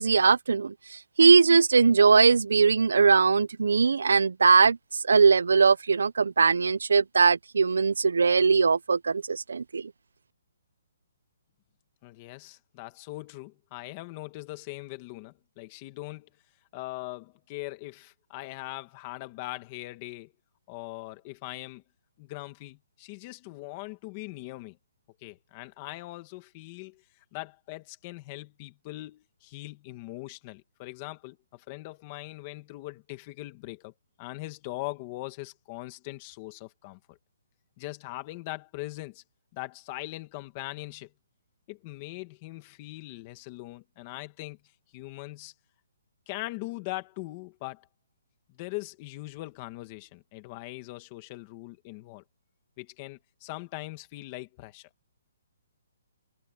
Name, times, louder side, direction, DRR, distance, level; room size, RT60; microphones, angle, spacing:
voice 1, 0.0-4.8 5.0-9.9, right 5 dB, 85° right, 0.6 m, -21 dB
voice 2, 12.0-16.3 16.7-20.3 20.7-21.8 22.2-24.8 25.2-27.0 27.3-33.9 34.2-37.2 37.8-39.2 39.5-41.1 41.7-44.6 44.9-45.5 46.3-47.9 48.5-52.2 52.8-54.9, left 20 dB, 20° left, 1.9 m, -41 dB
hypercardioid pair, 180°, 0 cm